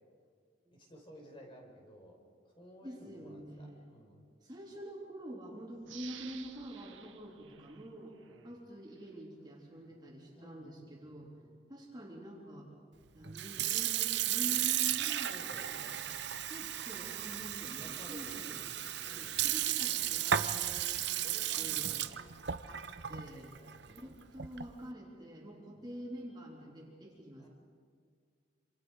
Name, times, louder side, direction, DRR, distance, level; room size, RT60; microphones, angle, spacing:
voice 1, 0.7-2.2 2.4-4.2 5.9-6.0 7.4-7.7 8.3-8.6 9.8-10.9 11.2-11.5 15.2-16.0 17.8-18.7 18.9-19.4 20.8-20.9 21.2-22.4 22.8-23.3 23.5-24.2 25.7-25.9 27.4-27.5, equal, 25° left, 0 dB, 4.6 m, -56 dB
voice 2, 2.8-3.9 4.4-8.2 8.4-11.3 11.7-12.7 13.1-15.9 16.5-18.6 19.0-21.2 21.6-22.0 22.7-22.8 23.1-23.5 23.9-27.5, equal, 20° right, -2 dB, 3.2 m, -47 dB
sound 1, 5.8-8.5 9.0-9.1, right 9 dB, 85° right, 1.6 m, -53 dB
Sink (filling or washing) / Fill (with liquid), 13.2-24.8, right 11 dB, 60° right, 0.7 m, -34 dB
sound 2, 15.7-20.8, left 3 dB, 85° left, 1.8 m, -59 dB
27.5 x 27.0 x 4.8 m, 2.1 s
head